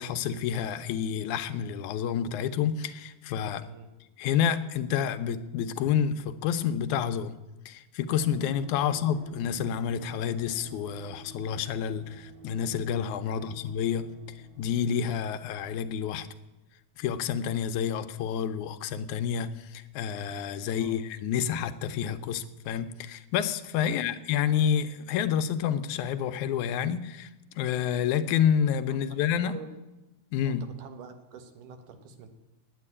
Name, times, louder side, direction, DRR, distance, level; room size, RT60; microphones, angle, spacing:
voice 1, 0.0-3.7 4.2-7.4 7.7-14.1 14.6-16.3 17.0-27.3 27.6-29.6 30.3-30.6, left 8 dB, 80° left, 11 dB, 2.0 m, -29 dB
sound 1, 8.2-16.7 16.9-17.0, right 5 dB, 50° right, 0.6 m, -51 dB
voice 2, 20.7-21.0 23.9-24.1 28.9-29.0 29.4-29.8 30.5-32.3, right 6 dB, 85° right, 8 dB, 2.7 m, -47 dB
9.2 x 9.1 x 9.7 m, 1.0 s
omnidirectional pair, 3.6 m